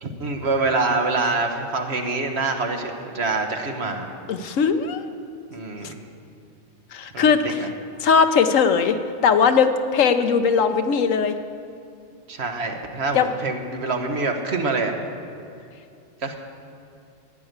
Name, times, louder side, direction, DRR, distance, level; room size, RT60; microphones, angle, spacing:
voice 1, 0.0-4.1 5.5-6.0 7.1-7.7 12.3-14.9 16.2-16.4, right 3 dB, 55° right, 4 dB, 1.5 m, -25 dB
voice 2, 4.3-5.1 5.8-5.9 6.9-7.7 8.0-9.0 9.2-11.4 13.1-13.3, left 6 dB, 75° left, 9 dB, 1.2 m, -19 dB
13.5 x 9.7 x 8.0 m, 2.5 s
omnidirectional pair, 1.4 m